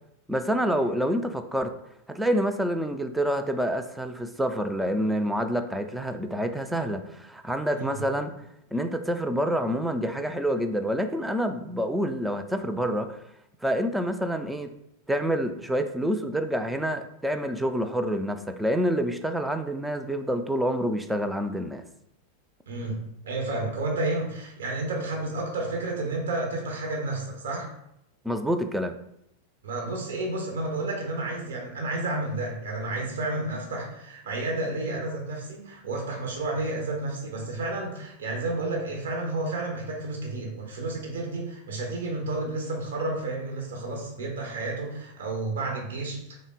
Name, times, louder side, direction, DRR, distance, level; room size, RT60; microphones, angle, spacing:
voice 1, 0.3-1.7 2.1-8.3 8.7-13.2 13.6-14.7 15.1-21.8 28.2-28.9, equal, 5° right, 6 dB, 0.3 m, -27 dB
voice 2, 7.7-8.1 22.7-27.7 29.6-46.4, right 2 dB, 65° right, 0 dB, 0.9 m, -31 dB
3.5 x 2.0 x 3.9 m, 0.78 s
figure-of-eight pair, 90°, 0 cm